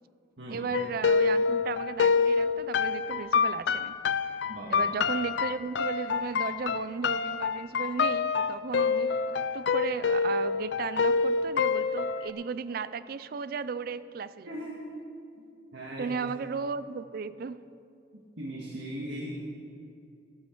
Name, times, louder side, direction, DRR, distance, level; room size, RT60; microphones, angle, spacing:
voice 1, 0.5-4.0 4.7-14.5 16.0-17.6, right 5 dB, 55° right, 15 dB, 0.4 m, -35 dB
sound 1, 0.7-12.3, left 5 dB, 75° left, 0.4 m, -27 dB
voice 2, 4.5-4.9 14.4-14.9 15.4-15.5 15.7-16.2 18.4-19.3, right 1 dB, 85° right, -3 dB, 1.7 m, -39 dB
13.5 x 13.0 x 4.5 m, 2.5 s
head